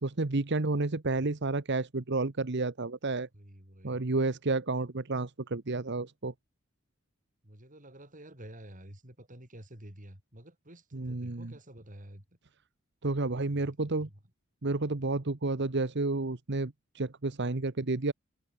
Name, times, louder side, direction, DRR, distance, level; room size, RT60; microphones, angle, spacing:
voice 1, 0.0-3.3 3.8-6.3 10.9-11.5 13.0-14.1 14.6-18.1, right 3 dB, 60° right, 1.2 m, -31 dB
voice 2, 3.3-4.1 7.4-12.4 13.3-13.7 14.0-14.2, right 1 dB, 40° right, 5.8 m, -50 dB
head